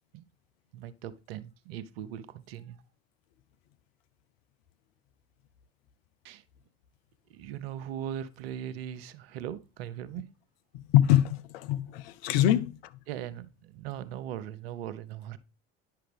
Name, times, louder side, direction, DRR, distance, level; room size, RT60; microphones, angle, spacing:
voice 1, 0.7-2.8 6.2-6.4 7.3-10.3 13.1-15.4, right 10 dB, 80° right, 0.8 m, -39 dB
voice 2, 10.7-12.9, left 12 dB, 75° left, 0.7 m, -24 dB
10.0 x 5.7 x 3.4 m
hypercardioid pair, 60°, 30 cm